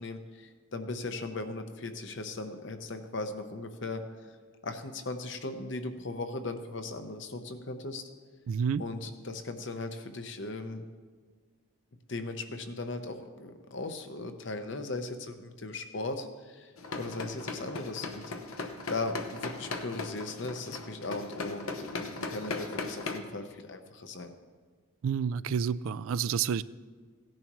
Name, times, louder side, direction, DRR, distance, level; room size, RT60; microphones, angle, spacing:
voice 1, 0.0-4.1 4.6-8.1 8.8-10.8 12.1-18.2 18.9-24.3, left 2 dB, 60° left, 7 dB, 0.9 m, -38 dB
voice 2, 8.5-8.8 25.0-26.6, right 7 dB, 75° right, 18 dB, 0.3 m, -29 dB
sound 1, 16.8-23.2, left 3 dB, 85° left, 1.0 m, -38 dB
17.0 x 10.5 x 3.1 m, 1.5 s
head